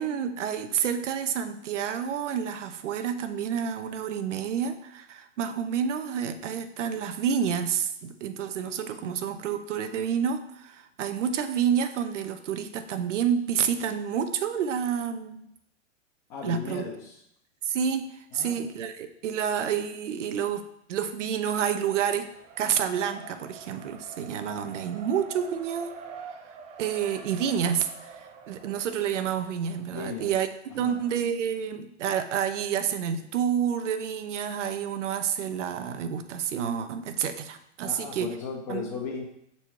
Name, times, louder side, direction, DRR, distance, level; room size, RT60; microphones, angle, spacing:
voice 1, 0.0-15.5 16.4-16.8 17.6-20.6 20.9-22.3 22.6-26.0 26.8-30.5 30.7-38.3 38.7-38.9, right 8 dB, 75° right, 9 dB, 0.9 m, -29 dB
voice 2, 16.3-17.2 18.3-18.6 29.9-30.3 30.7-31.0 37.8-39.2, left 5 dB, 40° left, -2 dB, 1.1 m, -36 dB
Race car auto racing, 21.4-30.5, right 5 dB, 20° right, 0.4 m, -46 dB
6.8 x 4.3 x 4.6 m, 0.75 s
hypercardioid pair, 130°, 37 cm